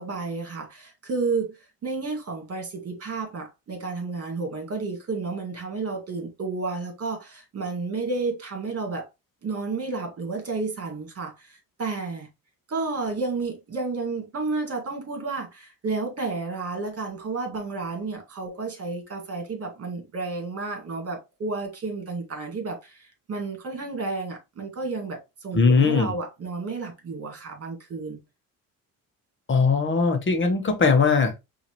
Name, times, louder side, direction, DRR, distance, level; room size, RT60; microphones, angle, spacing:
voice 1, 0.0-9.1 9.4-12.3 12.7-28.2, right 3 dB, 45° right, 2.1 m, -31 dB
voice 2, 25.5-26.1 29.5-31.4, left 4 dB, 35° left, 1.2 m, -20 dB
5.7 x 2.9 x 3.1 m
cardioid pair, 115°, 35 cm